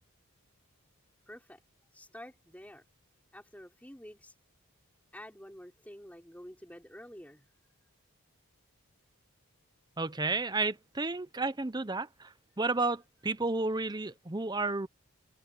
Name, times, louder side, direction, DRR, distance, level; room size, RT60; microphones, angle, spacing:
voice 1, 1.3-1.6 1.9-2.8 3.3-4.3 5.1-7.5, equal, 5° left, 4.9 m, -49 dB
voice 2, 10.0-14.9, right 3 dB, 20° right, 0.7 m, -32 dB
head